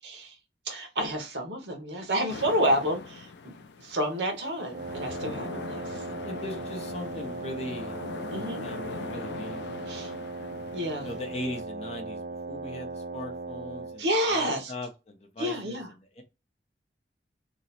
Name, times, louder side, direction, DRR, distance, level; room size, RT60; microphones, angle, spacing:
voice 1, 0.0-0.3 0.7-3.3 3.8-6.0 8.3-8.6 9.9-10.1 10.7-11.1 14.0-14.7 15.4-15.9, equal, 70° right, 1.0 m, -29 dB
sound 1, 2.3-11.6, left 5 dB, 75° left, 0.4 m, -42 dB
Wind instrument woodwind instrument, 4.7-14.0, right 3 dB, 55° right, 0.5 m, -38 dB
voice 2, 6.2-8.0 8.6-10.2 11.0-12.2 12.5-15.8 16.2-16.3, left 1 dB, 35° left, 0.7 m, -39 dB
3.0 x 2.0 x 4.0 m
head